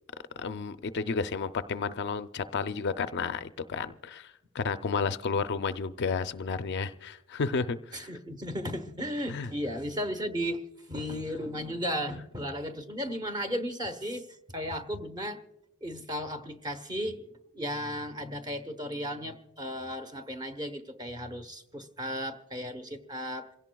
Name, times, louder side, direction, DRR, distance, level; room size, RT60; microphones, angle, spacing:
voice 1, 0.4-8.1 9.3-9.5, left 5 dB, 50° left, 11 dB, 0.5 m, -32 dB
voice 2, 7.9-10.6 10.9-15.4 15.8-17.3 17.5-23.5, equal, 20° right, 7 dB, 0.9 m, -35 dB
28.0 x 17.0 x 2.3 m, 0.98 s
head